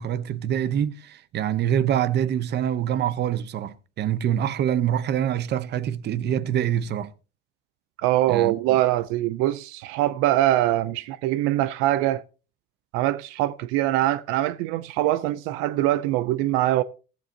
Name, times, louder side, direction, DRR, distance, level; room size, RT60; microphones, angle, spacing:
voice 1, 0.0-7.1 8.3-8.5, right 10 dB, 55° right, 0.9 m, -25 dB
voice 2, 8.0-12.2 12.9-16.8, right 14 dB, 85° right, 0.6 m, -23 dB
15.5 x 14.5 x 2.9 m
supercardioid pair, 95°, 21 cm